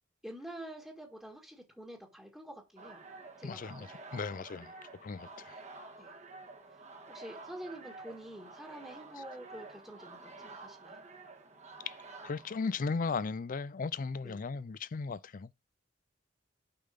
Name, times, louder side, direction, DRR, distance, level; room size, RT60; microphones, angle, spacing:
voice 1, 0.2-3.0 3.4-4.0 4.6-4.7 6.0-6.1 7.1-11.0 14.2-14.4, right 1 dB, 5° right, 1.7 m, -47 dB
sound 1, 2.8-13.2, right 3 dB, 35° right, 1.5 m, -50 dB
voice 2, 3.4-4.7 5.0-5.6 11.9-12.0 12.2-15.5, left 4 dB, 45° left, 0.4 m, -36 dB
6.8 x 5.7 x 5.1 m
head